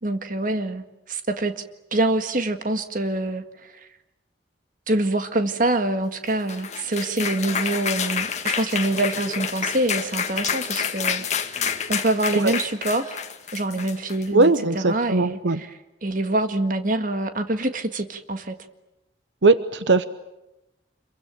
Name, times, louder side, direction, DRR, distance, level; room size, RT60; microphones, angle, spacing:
voice 1, 0.0-1.5 1.9-3.9 4.9-11.2 11.9-13.2 13.5-18.6, right 2 dB, 50° right, 8 dB, 1.8 m, -25 dB
sound 1, 6.3-14.6, left 7 dB, 40° left, 1.8 m, -28 dB
voice 2, 14.3-15.6 19.4-20.0, right 3 dB, 80° right, 13 dB, 0.9 m, -19 dB
27.0 x 23.5 x 9.1 m, 0.91 s
head